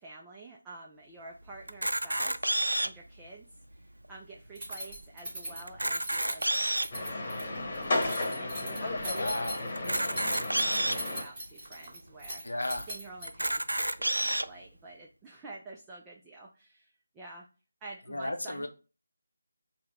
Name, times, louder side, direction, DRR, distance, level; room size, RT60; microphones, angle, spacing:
voice 1, 0.0-3.5 4.1-6.9 7.3-7.9 8.1-12.6 12.9-17.5 17.8-18.7, right 2 dB, 10° right, 0.4 m, -49 dB
Camera, 1.7-3.1 3.7-3.8 4.0-4.2 4.7-4.8 5.6-7.0 7.6-7.7 9.8-11.0 11.7-11.8 12.1-12.2 13.3-14.5, right 1 dB, 90° right, 0.3 m, -29 dB
Keys jangling, 4.6-13.6, right 1 dB, 25° right, 1.6 m, -41 dB
sound 1, 6.9-11.2, left 2 dB, 40° left, 1.0 m, -33 dB
voice 2, 9.1-9.6 12.4-12.9 18.1-18.7, left 1 dB, 75° left, 0.7 m, -34 dB
3.9 x 2.2 x 4.1 m
figure-of-eight pair, 160°, 0 cm